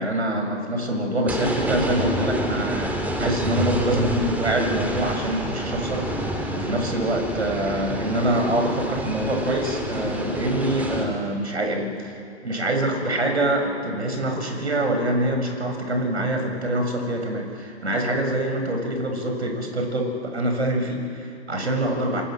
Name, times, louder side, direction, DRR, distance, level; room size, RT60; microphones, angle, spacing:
voice 1, 0.0-6.1 6.5-22.2, right 1 dB, 70° right, 4 dB, 7.2 m, -25 dB
sound 1, 1.3-11.1, right 1 dB, 5° right, 2.9 m, -28 dB
27.5 x 26.5 x 7.8 m, 2.4 s
figure-of-eight pair, 125°, 35 cm